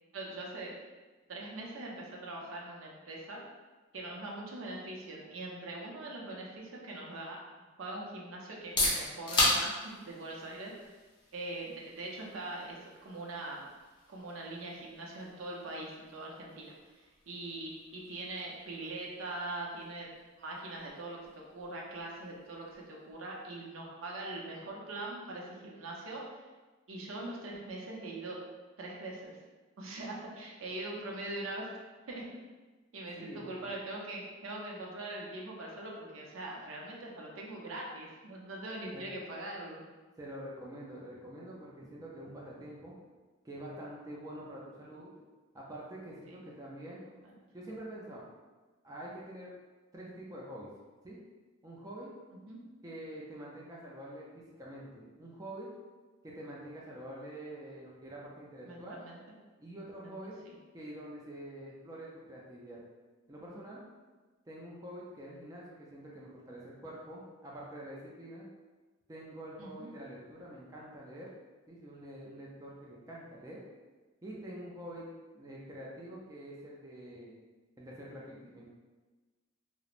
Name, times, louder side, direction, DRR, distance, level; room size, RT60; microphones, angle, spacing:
voice 1, 0.1-0.8 1.3-3.4 3.9-7.4 7.8-10.7 11.3-13.6 14.1-20.1 20.4-26.4 26.9-28.4 28.8-29.4 29.8-31.7 32.1-32.3 32.9-39.8 46.3-46.4 47.1-47.3 52.5-52.6 58.6-59.4 60.0-60.1 60.4-60.6 69.6-69.9, right 2 dB, 80° right, -2 dB, 0.5 m, -42 dB
sound 1, 8.5-24.1, left 1 dB, 25° left, 0.6 m, -38 dB
voice 2, 33.2-33.5 38.9-39.1 40.2-43.0 43.4-45.1 45.5-47.0 47.5-48.2 48.8-49.5 49.9-50.7 51.0-51.2 51.6-52.1 52.8-55.7 56.2-59.0 59.6-60.4 60.7-62.8 63.3-63.8 64.5-68.5 69.1-71.3 71.7-73.6 74.2-77.3 77.8-78.7, right 1 dB, 15° right, -5 dB, 0.3 m, -46 dB
3.0 x 2.0 x 2.4 m, 1.3 s
head